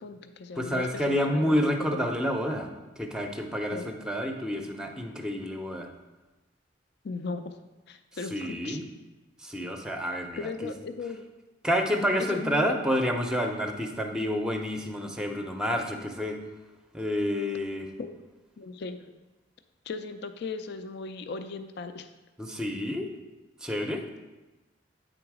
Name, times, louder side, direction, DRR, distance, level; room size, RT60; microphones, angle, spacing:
voice 1, 0.0-2.1 3.7-3.9 7.0-7.5 7.9-8.8 10.4-11.3 12.2-12.8 18.0-18.2 18.6-19.1 19.9-22.1, left 4 dB, 60° left, 9 dB, 0.4 m, -37 dB
voice 2, 0.6-5.9 8.3-8.8 9.4-10.7 11.6-16.4 16.9-17.9 22.4-23.1 23.6-24.0, equal, 5° right, 4 dB, 0.6 m, -29 dB
8.8 x 3.9 x 4.8 m, 1.1 s
head